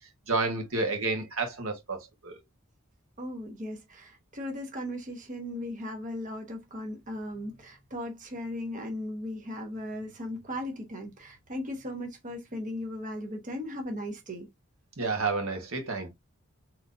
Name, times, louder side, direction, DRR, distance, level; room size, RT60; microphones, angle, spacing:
voice 1, 0.3-2.4 15.0-16.1, right 3 dB, 85° right, 1.3 m, -30 dB
voice 2, 3.2-14.5, left 1 dB, 40° right, 1.0 m, -37 dB
3.9 x 3.0 x 2.5 m
head